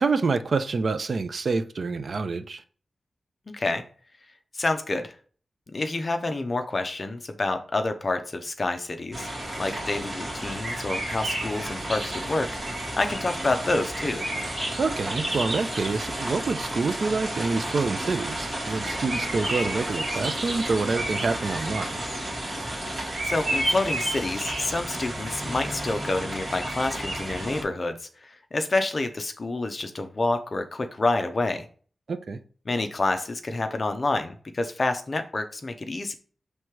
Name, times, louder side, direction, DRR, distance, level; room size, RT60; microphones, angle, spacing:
voice 1, 0.0-2.6 14.8-22.0 32.1-32.4, right 4 dB, 55° right, 0.5 m, -27 dB
voice 2, 4.5-5.1 5.7-9.3 9.6-12.5 13.0-14.3 23.2-31.6 32.7-36.1, left 2 dB, 35° left, 0.6 m, -28 dB
sound 1, 9.1-27.6, right 1 dB, 25° right, 2.2 m, -31 dB
6.2 x 3.3 x 4.6 m
wide cardioid pair, 160°, 0 cm